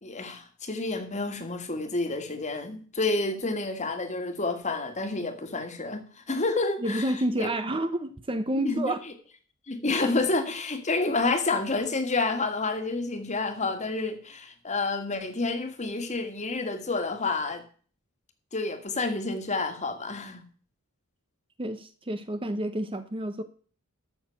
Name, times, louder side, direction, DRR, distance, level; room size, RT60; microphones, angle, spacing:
voice 1, 0.0-7.5 8.6-8.9 9.7-17.6 18.5-20.4, left 3 dB, 35° left, 1.9 m, -29 dB
voice 2, 6.8-9.0 21.6-23.4, right 1 dB, 25° right, 0.8 m, -29 dB
13.5 x 6.6 x 5.8 m
head